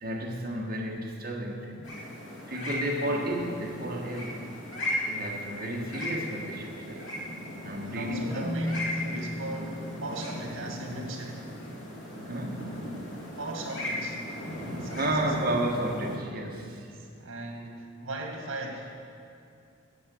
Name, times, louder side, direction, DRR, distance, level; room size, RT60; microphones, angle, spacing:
voice 1, 0.0-2.0 2.5-4.4 5.1-7.1 7.6-8.5 12.2-12.8 14.9-16.9, right 1 dB, 45° right, -1 dB, 1.4 m, -32 dB
sound 1, 1.8-16.2, left 1 dB, 65° left, 2.2 m, -37 dB
voice 2, 3.0-3.4 7.4-7.6 7.8-11.6 13.4-14.2 14.6-15.4 16.6-19.2, right 2 dB, 75° right, 1 dB, 1.8 m, -39 dB
Marimba xylophone, 8.3-11.3, left 1 dB, 20° right, 2.8 m, -36 dB
9.9 x 7.2 x 6.8 m, 2.6 s
head